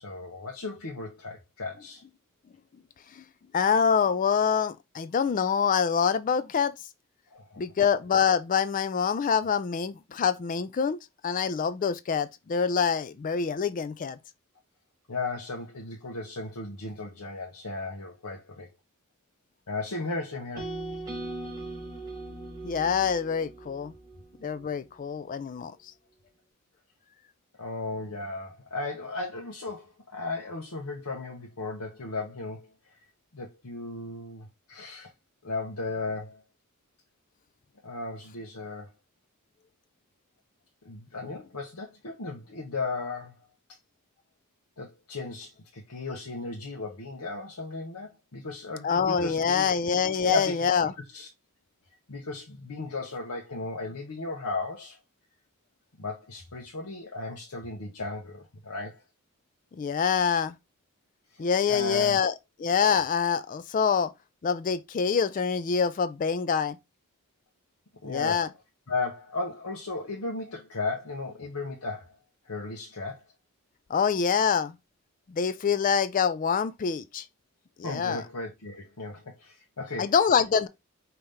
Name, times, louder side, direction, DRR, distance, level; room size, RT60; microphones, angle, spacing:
voice 1, 0.0-2.0 7.3-7.6 15.1-18.7 19.7-20.7 27.6-32.7 33.3-35.1 35.4-36.4 37.8-38.9 40.8-43.4 44.8-49.8 50.2-51.3 52.1-55.0 56.0-59.0 61.3-62.2 68.0-68.4 68.9-72.1 72.5-73.2 77.8-80.1, left 3 dB, 85° left, 1.0 m, -35 dB
voice 2, 3.5-6.7 7.6-11.0 11.2-14.2 22.6-23.9 24.4-25.8 48.8-50.9 59.7-60.6 61.4-62.3 62.6-64.1 64.4-66.8 68.0-68.5 73.9-74.8 75.3-77.3 77.8-78.2 80.0-80.7, left 6 dB, 35° left, 0.3 m, -25 dB
sound 1, 20.6-24.7, right 2 dB, 15° right, 3.4 m, -39 dB
5.4 x 2.9 x 3.3 m
head